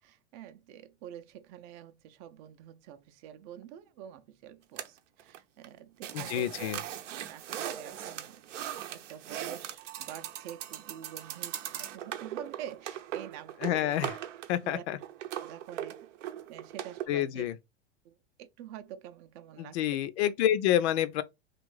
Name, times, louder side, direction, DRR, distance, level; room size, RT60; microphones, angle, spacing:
voice 1, 0.0-6.5 7.3-8.5 8.9-14.0 14.6-14.8 15.4-16.1 16.5-17.5 18.0-19.8, right 10 dB, 45° right, 0.5 m, -47 dB
sound 1, 4.8-5.4 5.6-5.7 6.0-17.0, right 11 dB, 85° right, 0.7 m, -39 dB
voice 2, 6.1-6.8 13.6-14.2 14.5-15.0 17.1-17.6 19.6-21.2, left 12 dB, 65° left, 0.5 m, -28 dB
3.1 x 2.5 x 3.1 m
supercardioid pair, 135°, 36 cm